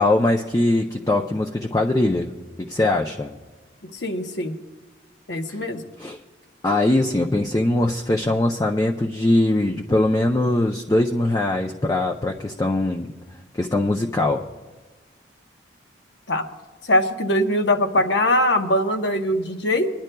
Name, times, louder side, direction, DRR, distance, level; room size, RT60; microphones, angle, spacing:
voice 1, 0.0-2.3 2.6-3.3 5.5-5.6 6.0-6.2 6.6-13.1 13.6-14.4, left 2 dB, 20° left, 1 dB, 0.4 m, -21 dB
voice 2, 3.8-4.6 5.3-5.8 16.3-16.4 16.8-19.9, left 1 dB, 75° left, 7 dB, 0.9 m, -22 dB
26.5 x 10.5 x 2.2 m, 1.3 s
head